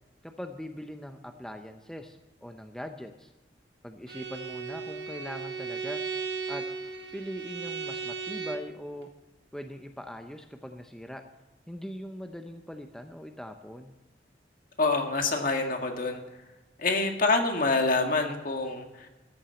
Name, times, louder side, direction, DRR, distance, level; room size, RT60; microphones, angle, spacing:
voice 1, 0.2-3.3 3.8-6.0 6.5-6.6 7.1-9.1 9.5-11.2 11.7-13.9, equal, 5° left, 5 dB, 0.7 m, -41 dB
Bowed string instrument, 4.1-8.8, right 5 dB, 80° right, 1.8 m, -36 dB
voice 2, 14.8-16.2 16.8-19.1, left 3 dB, 50° left, 4 dB, 1.8 m, -26 dB
14.0 x 7.3 x 7.7 m, 1.1 s
head